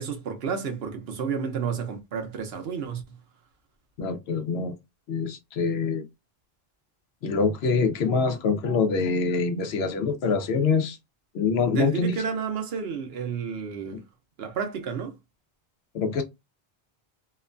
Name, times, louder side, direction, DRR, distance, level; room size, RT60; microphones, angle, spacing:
voice 1, 0.0-3.0 11.7-14.0 14.4-15.2, right 6 dB, 75° right, 1.0 m, -31 dB
voice 2, 4.0-4.7 5.1-6.0 7.2-11.0 11.3-12.2 15.9-16.2, left 4 dB, 85° left, 0.9 m, -25 dB
2.9 x 2.2 x 2.4 m
omnidirectional pair, 1.0 m